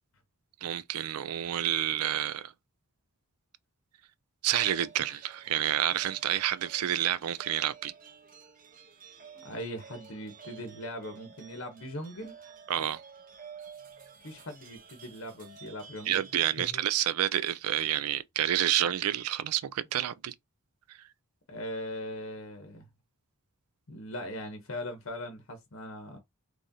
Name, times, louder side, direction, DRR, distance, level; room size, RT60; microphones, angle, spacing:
voice 1, 0.6-2.5 4.4-7.9 12.7-13.0 16.1-20.3 20.9-21.0, right 11 dB, 85° right, 0.4 m, -29 dB
sound 1, 4.5-16.7, right 6 dB, 40° right, 0.7 m, -51 dB
voice 2, 9.3-12.4 14.2-16.2 16.6-16.8 21.5-22.9 23.9-26.2, left 1 dB, 65° left, 0.8 m, -40 dB
3.1 x 2.7 x 3.7 m
head